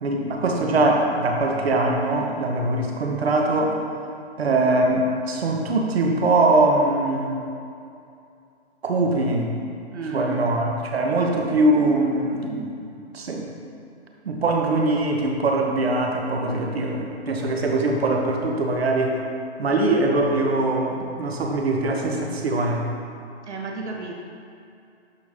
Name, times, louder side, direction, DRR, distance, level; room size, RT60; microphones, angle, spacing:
voice 1, 0.0-3.8 4.4-7.4 8.8-9.6 10.1-12.7 13.1-13.5 14.2-19.2 19.6-22.9, right 2 dB, 65° right, 1 dB, 1.3 m, -22 dB
voice 2, 9.9-10.4 23.5-24.1, right 3 dB, 80° right, 0 dB, 1.5 m, -32 dB
11.5 x 4.4 x 3.7 m, 2.5 s
hypercardioid pair, 175°, 34 cm